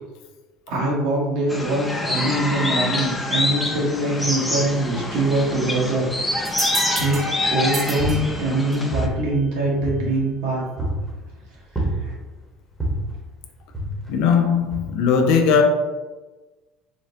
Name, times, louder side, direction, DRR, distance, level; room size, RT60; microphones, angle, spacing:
voice 1, 0.7-6.1 6.4-7.2 7.5-10.6 12.0-12.1, right 2 dB, 75° right, 1.1 m, -23 dB
sound 1, 1.5-9.1, left 2 dB, 10° left, 0.4 m, -26 dB
sound 2, 6.4-9.0, right 4 dB, 40° right, 0.6 m, -32 dB
sound 3, 7.0-7.4 7.8-8.6 8.9-10.4 10.8-11.2 11.8-12.4 12.8-13.2 13.7-14.3 14.7-14.8, right 1 dB, 5° right, 0.9 m, -28 dB
voice 2, 14.1-15.6, left 6 dB, 70° left, 0.4 m, -18 dB
3.6 x 2.1 x 2.6 m
supercardioid pair, 85°, 0 cm